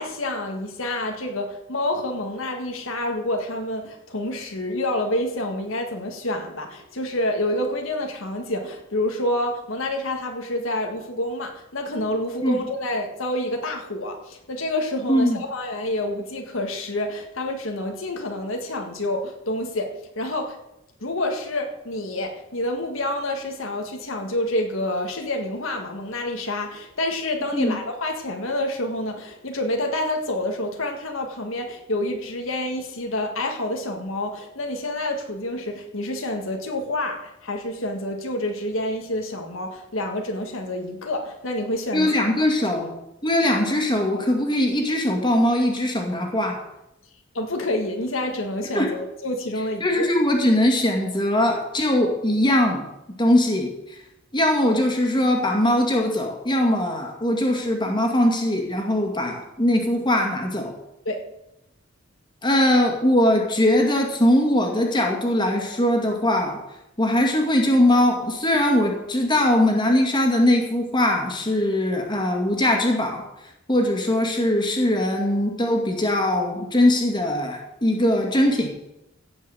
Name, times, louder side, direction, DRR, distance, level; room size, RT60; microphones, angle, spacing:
voice 1, 0.0-20.6 21.0-42.4 47.3-50.1 61.1-61.2, left 1 dB, 85° left, 3 dB, 1.8 m, -28 dB
voice 2, 41.9-42.9 43.2-46.6 48.7-48.9 49.8-52.8 53.2-54.0 54.3-60.7 62.4-66.6 67.0-73.2 73.7-78.7, left 1 dB, 25° left, 2 dB, 2.2 m, -21 dB
16.0 x 5.6 x 7.7 m, 0.88 s
head